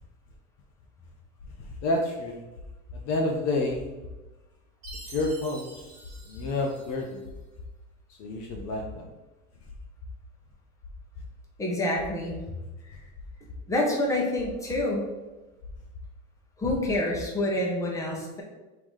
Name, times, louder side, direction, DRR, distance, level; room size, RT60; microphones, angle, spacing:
sound 1, 1.4-17.5, left 3 dB, 70° left, 0.9 m, -44 dB
voice 1, 1.8-2.4 2.9-3.9 5.0-5.8 6.3-7.2 8.2-9.1, left 2 dB, 45° left, 0 dB, 0.6 m, -29 dB
Chime, 4.8-7.3, right 3 dB, 30° right, 1.4 m, -47 dB
voice 2, 11.6-12.4 13.7-15.1 16.6-18.4, left 1 dB, 10° left, -2 dB, 0.9 m, -27 dB
3.7 x 2.9 x 4.8 m, 1.1 s
supercardioid pair, 145°, 36 cm